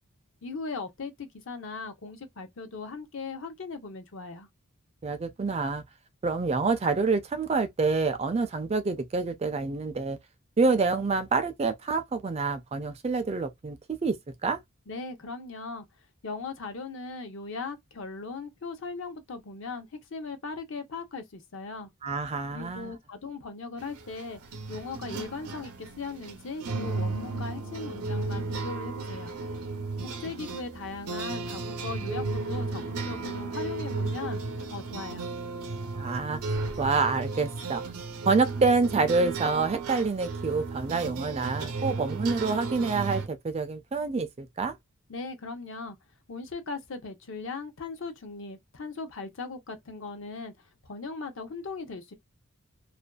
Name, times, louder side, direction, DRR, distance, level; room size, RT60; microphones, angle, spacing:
voice 1, 0.4-4.5 14.9-15.8 16.2-21.9 22.5-24.4 24.7-29.4 30.0-34.4 34.7-35.3 45.1-46.0 46.3-52.1, left 4 dB, 60° left, 0.6 m, -38 dB
voice 2, 5.0-5.8 6.2-10.2 10.6-14.1 14.4-14.6 22.0-22.9 35.9-37.8 38.3-44.8, right 4 dB, 30° right, 0.3 m, -27 dB
sound 1, 23.8-43.3, right 3 dB, 80° right, 0.6 m, -34 dB
2.4 x 2.2 x 2.2 m
head